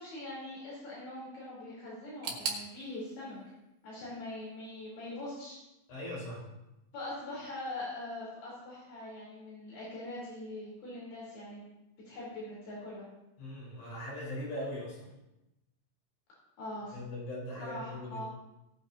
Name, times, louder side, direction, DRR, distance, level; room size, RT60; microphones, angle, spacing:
voice 1, 0.0-3.4 3.8-5.6 6.9-11.7 12.1-13.0 16.6-17.0 17.6-18.3, left 1 dB, 75° left, -6 dB, 6.2 m, -42 dB
sound 1, 2.2-5.1 5.4-6.2 6.5-6.6 7.4-7.5, right 5 dB, 65° right, 3.4 m, -42 dB
voice 2, 5.9-6.4 13.4-15.1 16.9-18.2, left 1 dB, 50° left, -6 dB, 6.6 m, -40 dB
18.5 x 9.9 x 3.0 m, 0.94 s
omnidirectional pair, 4.5 m